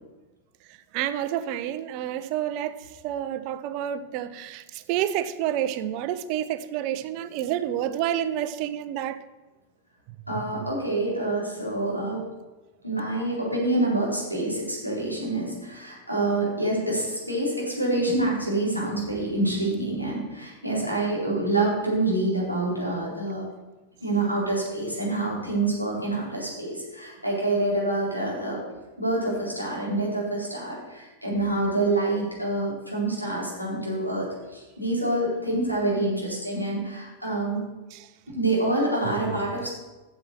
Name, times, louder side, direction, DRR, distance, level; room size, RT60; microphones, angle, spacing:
voice 1, 0.9-9.2 10.4-10.5 37.9-38.1, right 11 dB, 45° right, 0.6 m, -29 dB
voice 2, 10.3-12.2 12.8-23.4 24.0-28.6 29.0-34.3 34.5-37.6 38.3-39.7, right 2 dB, 90° left, 3.9 m, -27 dB
8.7 x 7.1 x 6.4 m
figure-of-eight pair, 90°, 0 cm